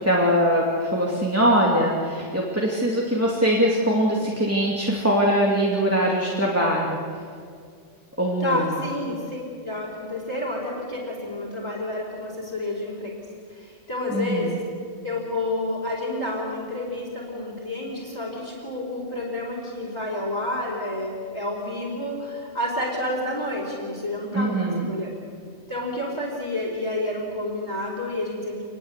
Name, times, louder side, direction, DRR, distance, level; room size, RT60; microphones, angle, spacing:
voice 1, 0.0-7.0 8.2-8.6 14.1-14.6 24.3-24.9, equal, 10° right, -3 dB, 2.7 m, -22 dB
voice 2, 8.4-13.2 13.5-14.6 15.0-25.1 25.7-28.7, left 1 dB, 15° left, -5 dB, 4.1 m, -30 dB
27.0 x 21.5 x 8.3 m, 2.2 s
omnidirectional pair, 1.3 m